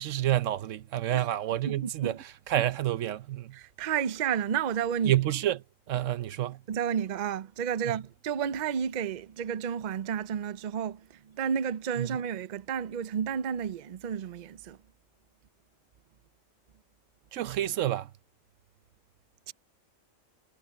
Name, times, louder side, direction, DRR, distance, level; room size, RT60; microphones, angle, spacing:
voice 1, 0.0-2.2 2.5-3.6 5.0-5.6 5.9-6.6 7.9-8.0 12.0-12.2 17.3-18.1, right 13 dB, 85° right, 1.0 m, -28 dB
voice 2, 1.5-2.2 3.5-5.2 6.7-14.8 19.5-19.6, right 8 dB, 50° right, 0.6 m, -31 dB
omnidirectional pair, 1.3 m